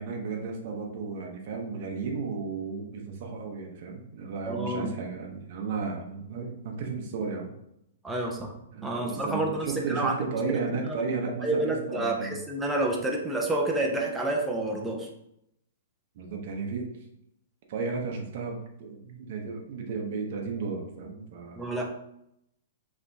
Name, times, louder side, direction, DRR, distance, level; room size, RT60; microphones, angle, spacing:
voice 1, 0.0-7.5 8.1-8.3 8.7-12.4 16.2-16.9 17.7-21.8, right 4 dB, 40° right, 2 dB, 0.8 m, -34 dB
voice 2, 4.5-4.9 8.0-8.5 8.8-10.2 10.5-10.6 10.9-15.1 21.6-21.8, right 2 dB, 5° right, 0 dB, 0.4 m, -29 dB
4.8 x 3.4 x 2.7 m, 0.79 s
hypercardioid pair, 175°, 0 cm